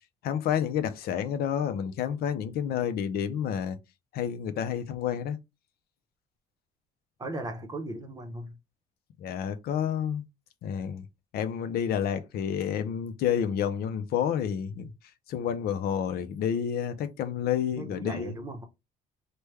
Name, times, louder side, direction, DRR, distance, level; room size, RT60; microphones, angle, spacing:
voice 1, 0.2-3.8 4.1-5.4 9.2-10.2 10.6-11.0 11.3-14.9 15.3-18.3, left 8 dB, 65° left, 0.5 m, -29 dB
voice 2, 7.2-8.6 17.8-18.6, right 2 dB, 20° right, 0.8 m, -37 dB
3.2 x 2.2 x 3.2 m
cardioid pair, 110°, 17 cm